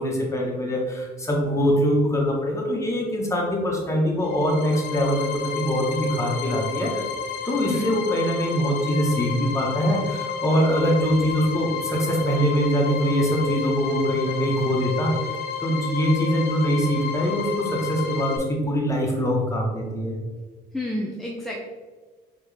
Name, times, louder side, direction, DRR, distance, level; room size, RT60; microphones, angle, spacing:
voice 1, 0.0-7.0 7.4-20.2, equal, 15° left, -1 dB, 1.1 m, -23 dB
sound 1, 4.2-18.4, left 6 dB, 80° left, 0.5 m, -31 dB
voice 2, 7.6-8.0 20.7-21.6, left 1 dB, ahead, -2 dB, 0.5 m, -29 dB
4.3 x 3.0 x 3.4 m, 1.4 s
cardioid pair, 110°, 17 cm